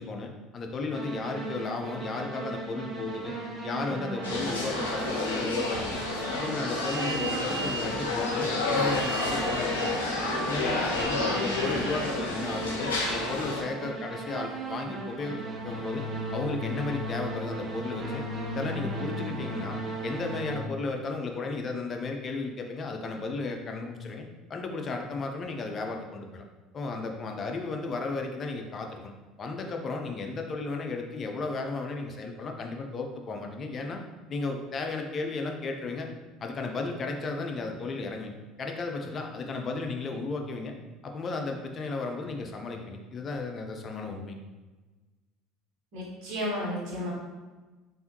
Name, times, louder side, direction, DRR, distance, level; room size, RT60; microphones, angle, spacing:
voice 1, 0.0-3.4 3.6-6.0 6.3-10.0 10.5-16.0 16.3-18.2 18.5-19.8 20.0-26.4 26.7-29.1 29.4-34.0 34.3-36.1 36.4-38.3 38.6-40.7 41.0-44.4, left 3 dB, 40° left, 3 dB, 0.5 m, -34 dB
sound 1, 0.9-20.6, right 2 dB, 40° right, 0.7 m, -37 dB
nyc esb mcdonalds, 4.2-13.6, left 2 dB, 85° left, 0.6 m, -30 dB
voice 2, 45.9-47.1, equal, 65° right, -5 dB, 1.3 m, -32 dB
3.4 x 2.6 x 2.9 m, 1.3 s
hypercardioid pair, 70°, 0 cm